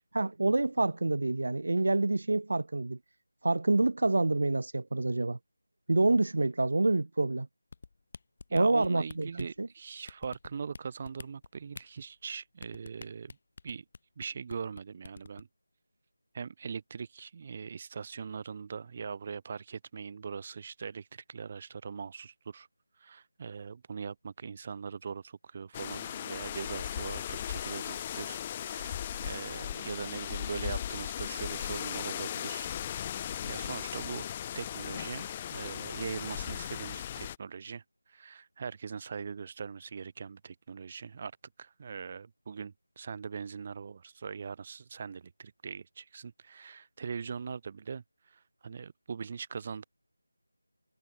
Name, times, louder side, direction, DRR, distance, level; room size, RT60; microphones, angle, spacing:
voice 1, 0.1-3.0 3.4-5.4 5.9-7.5 8.5-9.3 9.6-9.7, right 2 dB, 55° right, 1.3 m, -27 dB
sound 1, 7.7-9.6 10.1-10.8 11.0-11.8 12.6-14.2 14.5-14.8 15.0-15.4, left 4 dB, 40° left, 3.0 m, -45 dB
voice 2, 8.5-13.4 13.6-13.8 14.2-15.5 16.3-22.7 23.0-32.7 33.4-34.3 34.5-37.8 38.1-41.3 41.6-49.8, right 6 dB, 30° right, 2.3 m, -41 dB
sound 2, 25.7-37.4, left 10 dB, 15° left, 0.4 m, -37 dB
figure-of-eight pair, 165°, 0 cm